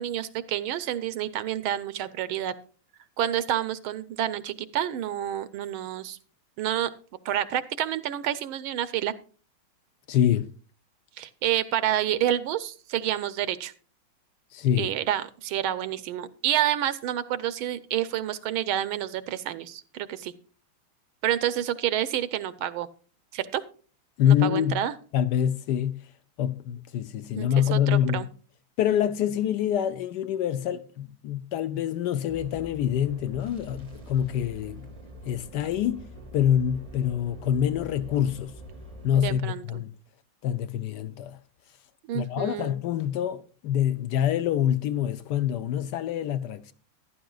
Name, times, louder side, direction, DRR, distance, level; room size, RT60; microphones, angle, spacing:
voice 1, 0.0-2.5 3.2-6.2 6.6-6.9 7.2-9.1 11.2-13.7 14.8-20.3 21.2-22.9 23.3-23.6 24.2-24.9 27.3-28.3 39.1-39.8 42.1-42.7, right 11 dB, 75° right, 1.4 m, -29 dB
voice 2, 10.1-10.5 14.5-14.9 24.2-24.8 25.1-26.0 26.4-28.3 28.8-34.9 35.3-36.0 36.3-38.5 39.0-39.9 40.4-41.4 42.1-46.7, left 10 dB, 75° left, 1.0 m, -26 dB
sound 1, 32.3-39.4, right 1 dB, 30° right, 0.6 m, -44 dB
14.0 x 11.5 x 2.3 m
omnidirectional pair, 2.4 m